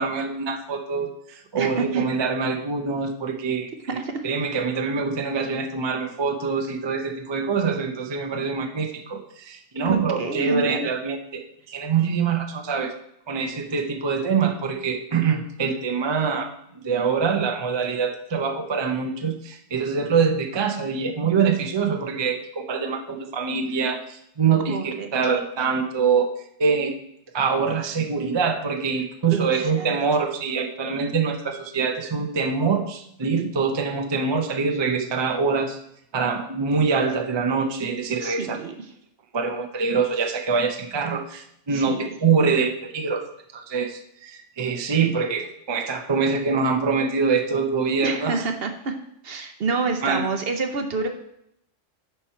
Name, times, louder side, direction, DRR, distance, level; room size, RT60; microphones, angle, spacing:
voice 1, 0.0-3.7 4.2-11.4 11.7-12.9 13.3-16.5 16.8-26.3 26.6-26.9 27.3-35.8 36.1-38.6 39.3-43.2 43.5-48.5 50.0-50.3, right 5 dB, 30° right, 4 dB, 0.5 m, -24 dB
voice 2, 1.6-2.0 4.0-4.2 9.8-10.9 24.7-25.1 29.3-29.9 38.2-38.7 41.7-42.1 48.0-48.9 49.2-51.1, right 4 dB, 55° right, 6 dB, 0.9 m, -28 dB
10.0 x 4.4 x 4.5 m, 0.76 s
omnidirectional pair, 1.3 m